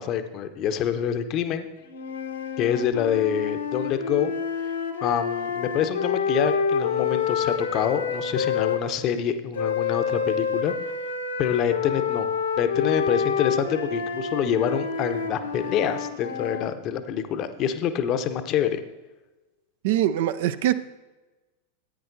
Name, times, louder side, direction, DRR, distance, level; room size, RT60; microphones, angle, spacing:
voice 1, 0.0-1.7 2.6-4.3 5.0-10.7 11.4-12.3 12.6-18.8, left 9 dB, 35° left, 10 dB, 0.7 m, -26 dB
sound 1, 1.9-8.8 9.5-16.7, left 6 dB, 70° left, 1.0 m, -28 dB
voice 2, 19.8-20.7, right 12 dB, 55° right, 13 dB, 0.4 m, -22 dB
14.5 x 9.3 x 2.6 m, 1.1 s
figure-of-eight pair, 90°, 0 cm